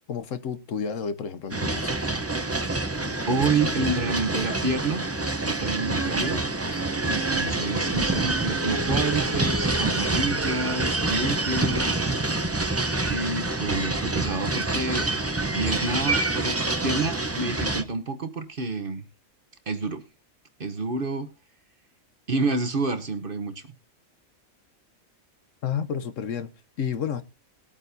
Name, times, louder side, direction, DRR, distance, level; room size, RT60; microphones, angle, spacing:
voice 1, 0.1-2.0 25.6-26.5 26.8-27.2, left 7 dB, 65° left, 1.2 m, -30 dB
sound 1, 1.5-17.8, right 2 dB, 20° right, 0.4 m, -26 dB
voice 2, 3.3-5.0 5.4-6.4 7.0-12.0 13.1-15.2 15.5-16.6 16.8-19.1 19.7-20.0 20.6-21.3 22.3-23.6, right 3 dB, 45° right, 1.0 m, -28 dB
20.0 x 8.8 x 2.7 m
omnidirectional pair, 1.5 m